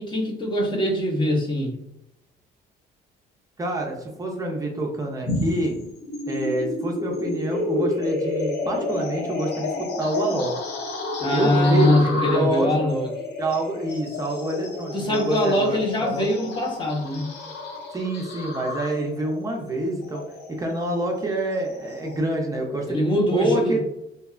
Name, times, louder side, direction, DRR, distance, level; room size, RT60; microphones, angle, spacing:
voice 1, 0.0-1.8 11.2-13.1 14.9-17.4 22.9-23.8, left 1 dB, 30° left, 1 dB, 0.6 m, -22 dB
voice 2, 3.6-5.7 6.3-10.5 11.3-12.9 13.4-16.3 17.9-20.2 20.5-23.0 23.3-23.8, right 1 dB, 20° right, 0 dB, 0.4 m, -26 dB
sound 1, 5.3-22.2, left 2 dB, 80° left, 0.6 m, -31 dB
2.8 x 2.2 x 2.3 m, 0.85 s
cardioid pair, 110°, 17 cm